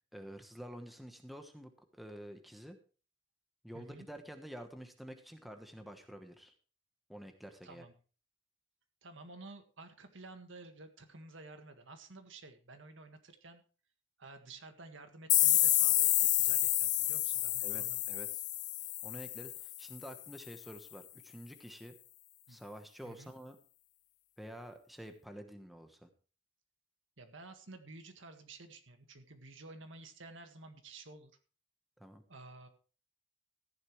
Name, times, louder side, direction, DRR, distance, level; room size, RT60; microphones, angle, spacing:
voice 1, 0.1-2.8 3.6-6.5 7.1-7.9 17.6-18.4 19.0-22.0 22.5-23.6 24.4-26.1 32.0-32.2, equal, ahead, 5 dB, 1.1 m, -49 dB
voice 2, 3.7-4.1 7.6-7.9 9.0-13.6 14.2-18.0 22.5-22.6 23.0-23.3 27.2-31.3 32.3-32.7, right 2 dB, 65° right, 7 dB, 1.8 m, -52 dB
sound 1, 15.3-20.0, left 16 dB, 40° left, 0.4 m, -29 dB
14.5 x 10.5 x 3.2 m, 0.38 s
head